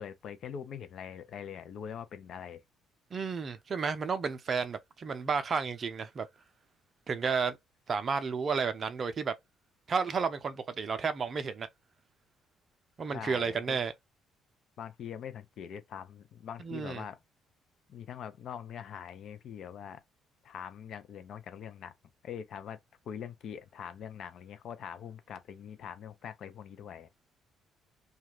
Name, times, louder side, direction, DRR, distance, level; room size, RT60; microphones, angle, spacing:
voice 1, 0.0-2.6 13.1-13.8 14.8-17.2 17.9-20.0 20.4-21.9 22.2-22.8 23.1-27.1, left 8 dB, 55° left, 0.4 m, -43 dB
voice 2, 3.1-6.3 7.1-7.6 7.9-9.3 9.9-11.7 13.0-13.9 16.6-17.0, right 5 dB, 45° right, 0.5 m, -32 dB
2.3 x 2.3 x 3.2 m
figure-of-eight pair, 45°, 0 cm